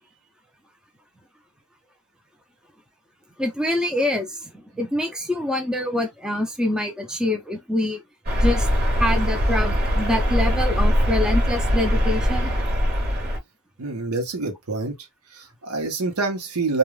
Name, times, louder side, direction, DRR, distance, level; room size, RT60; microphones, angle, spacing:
voice 1, 3.4-8.0 8.4-8.7 9.0-12.5, left 1 dB, 5° right, 0.5 m, -25 dB
sound 1, 8.3-13.4, equal, 45° right, 0.9 m, -21 dB
voice 2, 13.8-15.0 15.3-16.8, right 3 dB, 85° right, 0.9 m, -26 dB
2.4 x 2.3 x 3.1 m
head